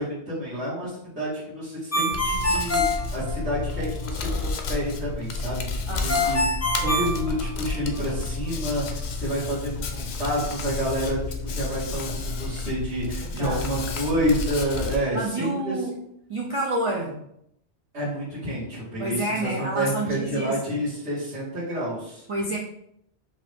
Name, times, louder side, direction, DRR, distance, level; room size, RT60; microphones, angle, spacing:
voice 1, 0.0-6.6 6.8-15.8 17.9-22.3, equal, 70° right, -10 dB, 2.2 m, -29 dB
Ringtone, 1.9-3.8 6.1-8.0, left 1 dB, 20° left, 0.4 m, -25 dB
Hands, 2.1-15.0, left 3 dB, 70° left, 0.8 m, -31 dB
voice 2, 5.9-6.5 6.8-7.0 13.0-13.8 15.1-16.0 16.3-17.2 19.0-20.8 22.3-22.6, right 2 dB, 40° right, -2 dB, 0.5 m, -29 dB
5.3 x 2.6 x 3.5 m, 0.74 s
omnidirectional pair, 1.2 m